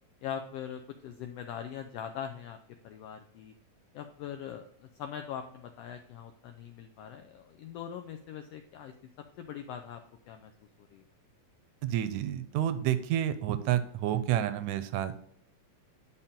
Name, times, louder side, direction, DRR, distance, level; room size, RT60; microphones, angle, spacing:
voice 1, 0.2-2.6 2.8-3.5 3.9-8.9 9.4-10.0 10.3-10.5 10.8-11.0, left 8 dB, 90° left, 6 dB, 1.4 m, -41 dB
voice 2, 11.8-15.3, right 11 dB, 85° right, 11 dB, 2.0 m, -29 dB
10.0 x 4.3 x 3.7 m, 0.67 s
omnidirectional pair, 3.4 m